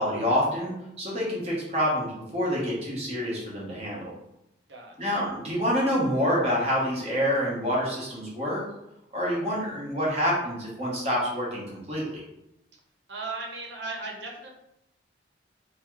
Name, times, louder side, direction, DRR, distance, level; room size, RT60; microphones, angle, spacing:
voice 1, 0.0-4.1 5.0-8.6 9.1-12.2, equal, 35° right, -5 dB, 1.2 m, -27 dB
voice 2, 4.7-5.2 13.1-14.5, right 3 dB, 70° right, -1 dB, 0.8 m, -37 dB
3.5 x 3.1 x 3.1 m, 0.85 s
head